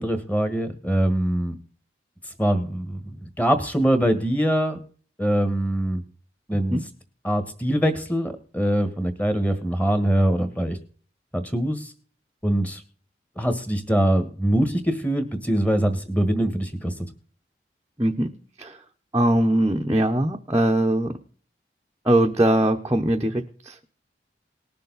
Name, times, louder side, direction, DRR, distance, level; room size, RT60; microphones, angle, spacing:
voice 1, 0.0-1.5 2.4-4.8 5.2-6.0 6.5-6.8 7.2-10.8 11.3-11.9 12.4-12.8 13.4-16.9, right 1 dB, 10° left, 9 dB, 1.4 m, -23 dB
voice 2, 19.1-21.1 22.1-23.9, right 1 dB, 15° right, 0 dB, 0.8 m, -21 dB
19.5 x 6.8 x 4.0 m, 0.41 s
head